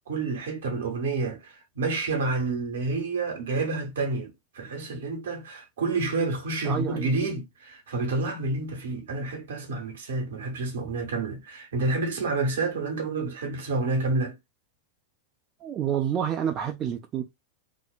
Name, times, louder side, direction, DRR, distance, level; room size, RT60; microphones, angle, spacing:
voice 1, 0.1-14.4, right 3 dB, 60° right, 0.8 m, -29 dB
voice 2, 6.6-7.1 15.6-17.2, right 9 dB, 30° right, 0.3 m, -28 dB
2.6 x 2.1 x 2.3 m
figure-of-eight pair, 90°, 0 cm